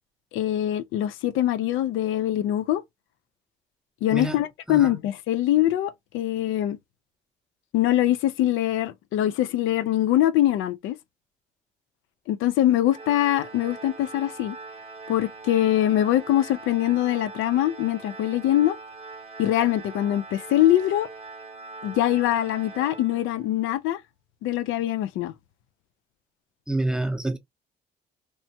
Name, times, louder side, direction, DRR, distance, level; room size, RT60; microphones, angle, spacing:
voice 1, 0.3-2.8 4.0-6.8 7.7-11.0 12.3-14.6 15.1-18.8 19.4-21.1 21.8-24.0 24.4-25.3, left 13 dB, 90° left, 0.4 m, -23 dB
Organ, 12.9-23.6, right 3 dB, 30° right, 0.9 m, -42 dB
voice 2, 26.7-27.4, right 1 dB, 5° right, 0.6 m, -27 dB
3.0 x 2.2 x 2.7 m
cardioid pair, 90°, 20 cm